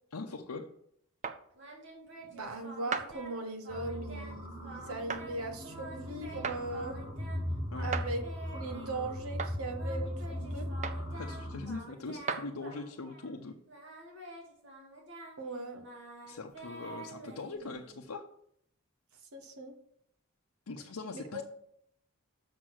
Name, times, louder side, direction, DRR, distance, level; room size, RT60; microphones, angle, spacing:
voice 1, 0.1-0.7 7.7-7.9 11.1-13.6 16.2-18.3 20.7-21.4, left 3 dB, 85° left, 2 dB, 0.7 m, -41 dB
sound 1, 1.2-1.4 2.9-3.1 5.1-5.3 6.4-6.6 7.9-8.1 9.4-9.6 10.8-11.1 12.3-12.5, right 5 dB, 30° right, 0.5 m, -34 dB
Singing, 1.6-3.4 3.6-4.4 4.6-5.4 5.6-7.4 7.7-9.2 9.8-13.4 13.7-18.1, right 2 dB, 55° right, 2.2 m, -49 dB
voice 2, 2.3-7.0 7.8-8.2 8.5-10.7 15.4-15.8 19.3-19.7 21.1-21.4, right 2 dB, 80° right, 5 dB, 1.4 m, -39 dB
sound 2, 3.7-11.7, equal, 15° right, 1.6 m, -39 dB
6.7 x 6.3 x 6.1 m, 0.69 s
head